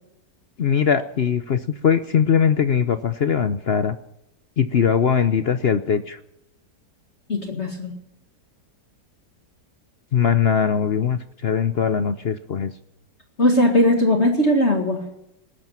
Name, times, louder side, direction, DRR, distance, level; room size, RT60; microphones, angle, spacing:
voice 1, 0.6-4.0 4.6-6.2 10.1-12.7, left 7 dB, 55° left, 11 dB, 0.6 m, -21 dB
voice 2, 7.3-7.9 13.4-15.0, left 1 dB, 40° left, 3 dB, 2.2 m, -19 dB
19.0 x 10.5 x 5.7 m, 0.83 s
omnidirectional pair, 1.8 m